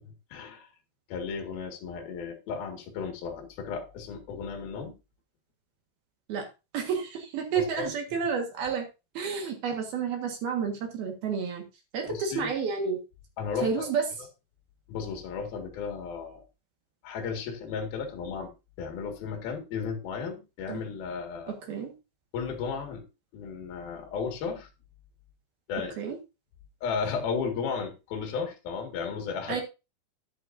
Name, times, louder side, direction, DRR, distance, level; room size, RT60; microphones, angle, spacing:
voice 1, 0.3-0.7 1.1-4.9 7.8-7.9 12.1-12.5 13.4-13.9 14.9-16.4 17.0-18.5 18.8-21.6 22.3-23.0 23.3-24.7 25.7-25.9 26.8-29.6, left 5 dB, 60° left, 3 dB, 3.6 m, -34 dB
voice 2, 6.7-8.9 9.1-11.6 11.9-13.0 13.6-14.0 20.7-20.8 21.5-21.9 26.0-26.2 29.5-29.6, right 6 dB, 60° right, 3 dB, 3.3 m, -30 dB
13.0 x 10.5 x 2.7 m, 0.28 s
omnidirectional pair, 5.2 m